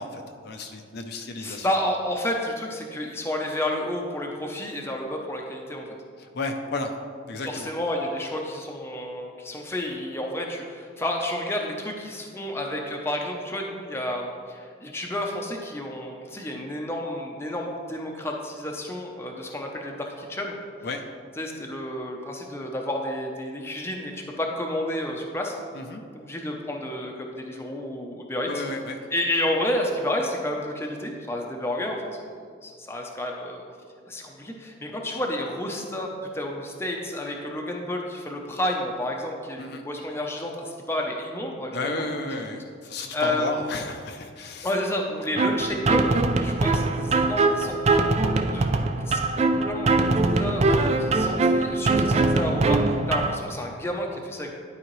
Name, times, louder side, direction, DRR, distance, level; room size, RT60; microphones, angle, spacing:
voice 1, 0.0-1.7 6.2-6.9 7.3-7.7 20.8-21.0 25.7-26.0 28.4-29.0 39.6-39.8 41.7-44.7, left 2 dB, 55° left, 4 dB, 0.6 m, -33 dB
voice 2, 1.4-5.9 7.4-20.6 21.4-25.6 26.1-28.6 29.1-32.3 32.6-33.6 34.1-42.3 43.1-43.7 44.6-48.2 48.5-54.6, left 1 dB, 10° left, 0 dB, 0.7 m, -31 dB
sound 1, 45.4-53.4, right 3 dB, 30° right, 0.4 m, -22 dB
11.5 x 4.9 x 3.1 m, 2.1 s
head